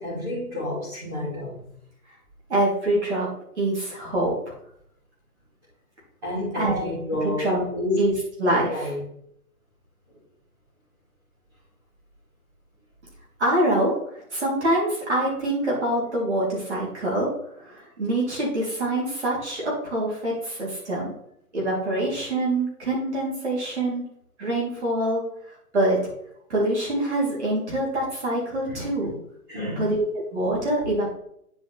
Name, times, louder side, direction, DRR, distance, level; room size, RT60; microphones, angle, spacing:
voice 1, 0.0-1.7 6.2-7.5 7.7-8.0 8.5-9.0 28.7-29.1 29.5-29.9, left 1 dB, 15° right, -13 dB, 3.3 m, -30 dB
voice 2, 2.5-3.3 3.6-4.3 6.5-6.9 7.2-7.6 8.0-8.1 8.4-8.9 13.4-17.3 17.6-21.1 21.5-24.0 24.4-25.2 25.7-26.0 26.5-29.1 29.8-30.0 30.3-31.1, right 1 dB, 45° right, -4 dB, 3.1 m, -25 dB
9.4 x 5.1 x 3.3 m, 0.71 s
hypercardioid pair, 175°, 45 cm